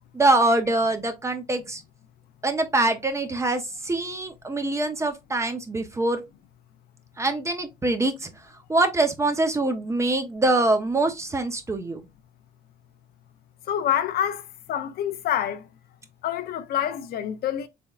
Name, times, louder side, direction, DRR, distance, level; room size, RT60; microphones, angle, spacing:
voice 1, 0.1-1.8 2.4-6.2 7.2-8.3 8.7-12.0, right 2 dB, 15° right, 0.6 m, -24 dB
voice 2, 13.7-14.4 14.7-15.6 16.2-17.7, left 10 dB, 65° left, 0.6 m, -26 dB
3.6 x 3.4 x 2.3 m
cardioid pair, 110°, 17 cm